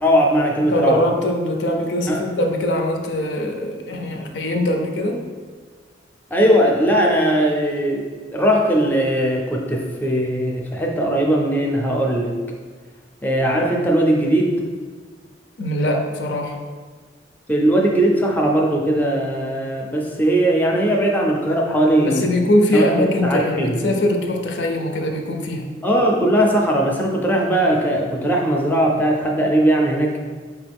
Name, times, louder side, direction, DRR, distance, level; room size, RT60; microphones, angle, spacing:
voice 1, 0.0-1.0 2.1-2.2 6.3-12.4 13.2-14.5 17.5-22.3 22.7-22.8 23.2-23.8 25.8-30.2, right 1 dB, 10° left, 0 dB, 0.4 m, -19 dB
voice 2, 0.7-5.2 15.6-16.6 22.0-25.7, left 1 dB, 85° left, 3 dB, 0.5 m, -21 dB
4.6 x 3.0 x 3.4 m, 1.5 s
head